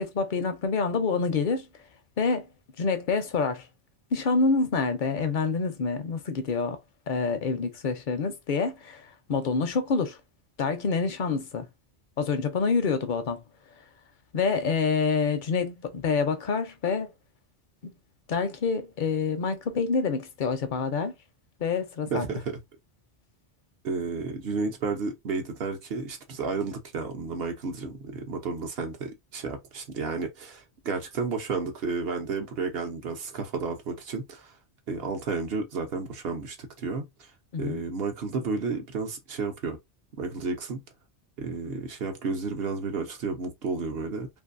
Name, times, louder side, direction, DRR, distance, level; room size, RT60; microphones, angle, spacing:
voice 1, 0.0-1.7 2.2-2.5 2.8-3.7 4.1-6.8 7.1-10.2 10.6-11.7 12.2-13.4 14.3-17.1 17.8-17.9 18.3-21.1 21.6-22.3 37.5-37.8, left 4 dB, 55° left, 0.6 m, -27 dB
voice 2, 22.1-22.6 23.8-34.5 34.9-37.3 37.6-39.8 40.2-40.8 41.4-44.3, right 4 dB, 60° right, 0.9 m, -32 dB
2.6 x 2.5 x 2.5 m
omnidirectional pair, 1.2 m